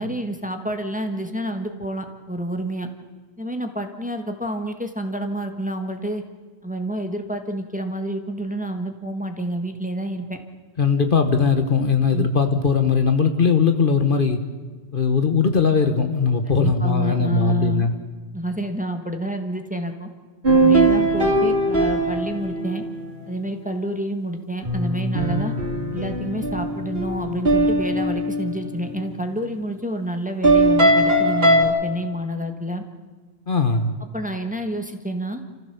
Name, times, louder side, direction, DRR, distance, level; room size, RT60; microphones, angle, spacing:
voice 1, 0.0-2.9 3.4-6.2 6.6-10.4 12.1-12.3 16.5-17.9 18.3-20.1 20.5-22.8 23.3-25.5 25.9-32.8 34.0-35.4, right 1 dB, 5° right, 5 dB, 1.6 m, -28 dB
voice 2, 10.8-14.4 14.9-17.9 33.5-33.9, left 5 dB, 50° left, 7 dB, 1.4 m, -19 dB
sound 1, 20.4-23.3 24.6-29.2 30.4-31.6, right 1 dB, 60° right, 3.3 m, -20 dB
28.5 x 15.0 x 7.0 m, 1.4 s
omnidirectional pair, 1.1 m